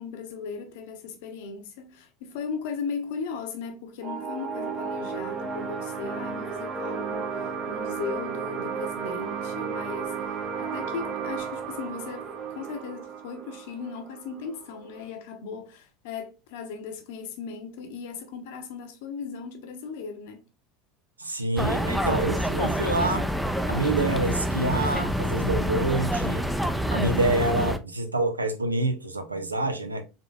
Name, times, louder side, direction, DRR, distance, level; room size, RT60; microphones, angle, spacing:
voice 1, 0.0-20.4, left 5 dB, 65° left, 0.8 m, -37 dB
sound 1, 4.0-15.1, right 6 dB, 35° right, 0.8 m, -34 dB
voice 2, 21.2-23.3 23.7-26.4 26.9-30.0, right 2 dB, 90° right, 0.5 m, -27 dB
sound 2, 21.6-27.8, equal, 5° right, 0.4 m, -27 dB
3.7 x 3.6 x 2.3 m
figure-of-eight pair, 75°, 0 cm